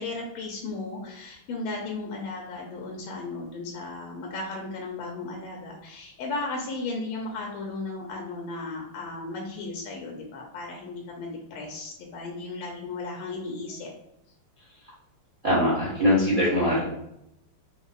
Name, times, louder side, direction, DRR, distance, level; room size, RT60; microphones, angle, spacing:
voice 1, 0.0-13.9, left 3 dB, 90° left, 0 dB, 1.5 m, -35 dB
voice 2, 15.4-16.8, left 1 dB, 50° right, -6 dB, 0.6 m, -22 dB
5.3 x 2.0 x 2.3 m, 0.82 s
omnidirectional pair, 2.4 m